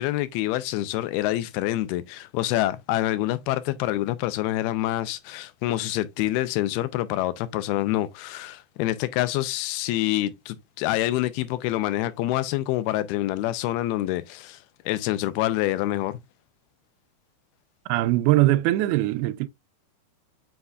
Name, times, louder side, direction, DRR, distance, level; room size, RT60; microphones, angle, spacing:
voice 1, 0.0-14.6 14.9-16.2, left 15 dB, 85° left, 2.6 m, -26 dB
voice 2, 17.9-19.5, right 16 dB, 85° right, 2.5 m, -21 dB
8.0 x 5.5 x 2.4 m
omnidirectional pair, 4.4 m